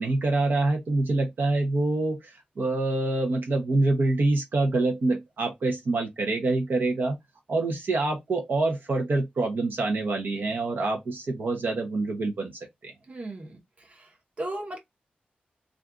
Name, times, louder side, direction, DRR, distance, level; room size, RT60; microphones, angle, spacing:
voice 1, 0.0-7.2 7.5-12.5 12.8-12.9, right 2 dB, 75° right, 0.7 m, -26 dB
voice 2, 13.1-14.8, right 1 dB, 45° right, 1.0 m, -37 dB
2.5 x 2.4 x 3.6 m
wide cardioid pair, 110°, 3 cm